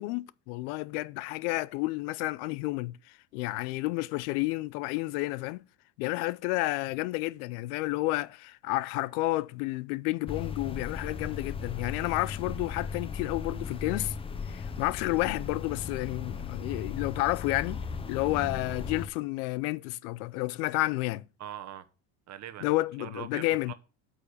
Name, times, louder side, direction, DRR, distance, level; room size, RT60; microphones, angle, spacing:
voice 1, 0.0-5.6 6.0-14.2 14.5-17.8 18.1-21.2 22.6-23.7, left 20 dB, 85° left, 0.6 m, -31 dB
sound 1, 10.3-19.1, left 5 dB, 15° left, 0.4 m, -37 dB
voice 2, 21.4-21.9 22.3-22.7 23.0-23.7, right 11 dB, 40° right, 1.1 m, -42 dB
8.5 x 5.1 x 6.5 m
cardioid pair, 135°, 42 cm